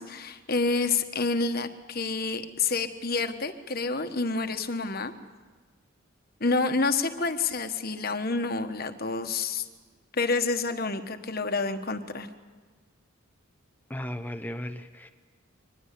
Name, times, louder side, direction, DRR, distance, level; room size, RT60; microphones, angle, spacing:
voice 1, 0.0-5.1 6.4-9.7 10.1-12.3, left 3 dB, 45° left, 7 dB, 1.3 m, -28 dB
voice 2, 13.9-15.1, left 1 dB, 10° left, 8 dB, 0.7 m, -35 dB
24.5 x 20.5 x 8.4 m, 1.4 s
head